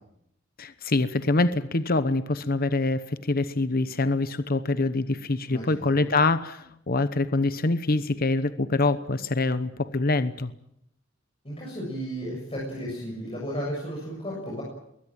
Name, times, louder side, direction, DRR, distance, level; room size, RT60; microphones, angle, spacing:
voice 1, 0.6-10.5, left 2 dB, 50° left, 12 dB, 1.0 m, -25 dB
voice 2, 5.5-6.1 11.4-14.6, equal, 30° left, -3 dB, 7.4 m, -34 dB
22.0 x 19.5 x 8.9 m, 0.77 s
head